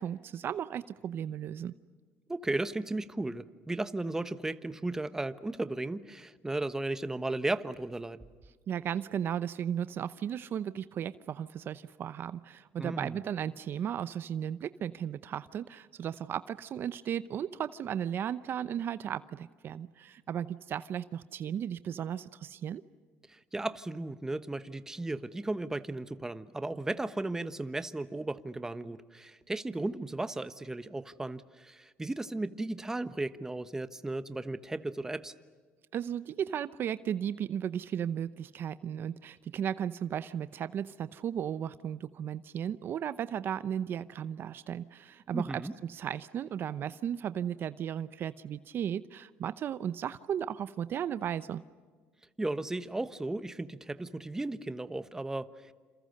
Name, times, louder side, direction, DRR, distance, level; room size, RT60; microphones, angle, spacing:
voice 1, 0.0-1.7 8.7-22.8 35.9-45.6 45.9-51.6, right 9 dB, 50° right, 15 dB, 0.7 m, -35 dB
voice 2, 2.3-8.2 12.8-13.2 23.3-35.3 45.3-45.7 52.4-55.7, right 2 dB, 10° right, 13 dB, 1.2 m, -35 dB
28.5 x 27.5 x 6.6 m, 1.5 s
cardioid pair, 110°, 5 cm